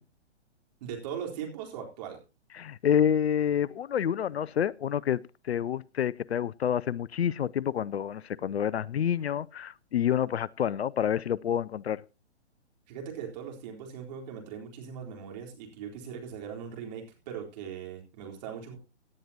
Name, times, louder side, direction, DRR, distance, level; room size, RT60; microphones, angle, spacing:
voice 1, 0.8-2.2 12.9-18.8, right 8 dB, 40° right, 4.0 m, -40 dB
voice 2, 2.5-12.0, left 9 dB, 65° left, 0.5 m, -28 dB
17.5 x 10.5 x 2.9 m
figure-of-eight pair, 130°, 35 cm